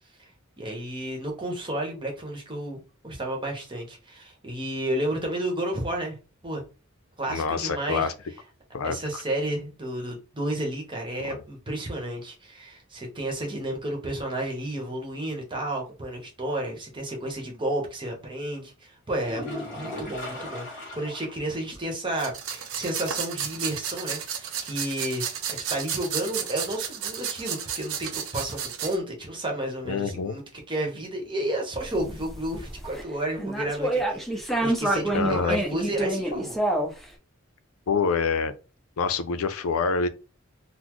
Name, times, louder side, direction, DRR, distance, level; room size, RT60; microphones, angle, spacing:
voice 1, 0.6-6.6 7.2-8.1 8.8-30.4 30.7-36.6, right 1 dB, 25° right, 1.0 m, -32 dB
voice 2, 7.3-8.1 8.7-9.2 11.2-11.4 29.9-30.4 35.1-35.6 37.9-38.5 39.0-40.1, left 5 dB, 85° left, 0.4 m, -26 dB
sound 1, 19.2-21.4 21.8-21.9 22.3-22.4 26.2-26.3, left 1 dB, 40° left, 1.9 m, -37 dB
sound 2, 22.2-29.0, right 8 dB, 75° right, 0.6 m, -33 dB
sound 3, 31.8-33.0 33.4-37.0, right 1 dB, ahead, 0.5 m, -27 dB
3.9 x 2.0 x 3.0 m
head